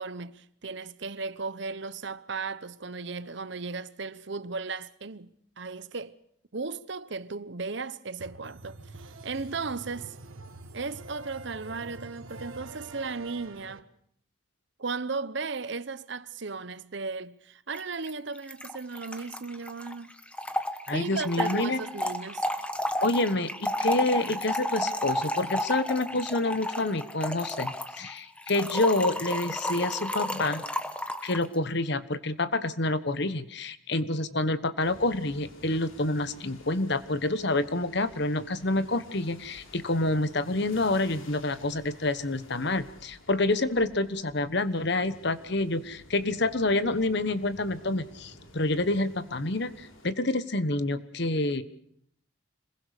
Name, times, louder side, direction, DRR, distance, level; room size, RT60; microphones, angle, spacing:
voice 1, 0.0-5.3 5.6-6.2 6.5-10.1 10.7-13.9 14.8-20.2 20.9-22.5, right 4 dB, 60° right, 0.8 m, -36 dB
sound 1, 8.2-13.8, right 2 dB, 80° right, 1.4 m, -45 dB
Trickle dribble / Fill (with liquid), 17.7-17.8 18.1-18.2 18.4-31.5, left 1 dB, 5° left, 1.1 m, -32 dB
voice 2, 20.9-21.8 23.0-30.7 31.2-51.6, left 2 dB, 55° left, 1.2 m, -28 dB
sound 2, 34.8-50.1, left 1 dB, 75° left, 3.5 m, -52 dB
26.5 x 21.0 x 6.7 m
head